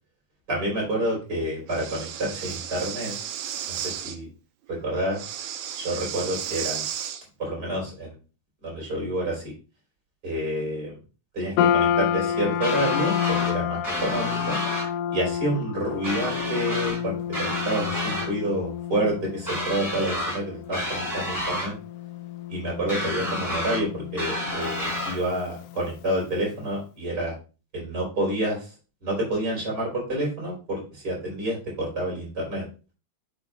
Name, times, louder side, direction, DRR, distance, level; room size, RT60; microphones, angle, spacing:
voice 1, 0.5-3.1 3.7-4.3 4.7-5.2 5.8-6.8 7.4-8.2 8.6-9.5 10.2-11.0 11.3-14.6 15.1-21.7 22.5-27.3 27.7-28.7 29.0-32.7, right 1 dB, 35° right, -3 dB, 4.3 m, -29 dB
Breathing, 1.7-4.2 5.1-7.2, right 9 dB, 80° right, 2.0 m, -33 dB
sound 1, 11.6-26.0, left 10 dB, 90° left, 2.0 m, -29 dB
sound 2, 12.6-13.5 13.8-14.9 16.0-17.0 17.3-18.3 19.5-20.4 20.7-21.7 22.9-23.8 24.2-25.2, equal, 5° right, 3.2 m, -30 dB
8.3 x 6.9 x 2.3 m, 0.34 s
omnidirectional pair, 3.4 m